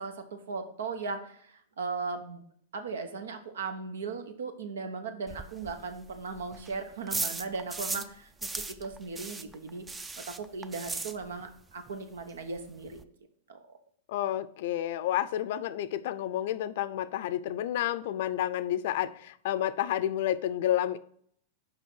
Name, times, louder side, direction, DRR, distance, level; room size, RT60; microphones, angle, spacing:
voice 1, 0.0-2.4 2.7-13.0 13.5-13.6, right 4 dB, 80° right, 1.0 m, -38 dB
sound 1, 5.3-8.1 8.4-11.6 11.9-12.0 12.3-12.4 12.6-13.0, right 3 dB, 15° right, 0.4 m, -37 dB
voice 2, 14.1-21.0, left 12 dB, 65° left, 0.5 m, -30 dB
5.8 x 5.2 x 4.6 m
hypercardioid pair, 115°, 0 cm